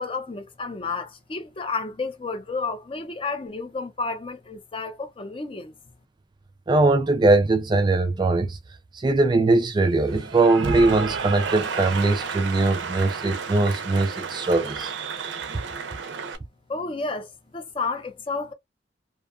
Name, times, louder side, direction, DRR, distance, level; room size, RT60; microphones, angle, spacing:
voice 1, 0.0-5.7 16.7-18.5, left 4 dB, 30° left, 0.5 m, -31 dB
voice 2, 6.7-8.6 9.0-14.9, right 2 dB, 25° right, 0.3 m, -21 dB
Cheering / Applause, 10.1-16.4, right 5 dB, 85° right, 0.5 m, -32 dB
2.6 x 2.3 x 2.4 m
head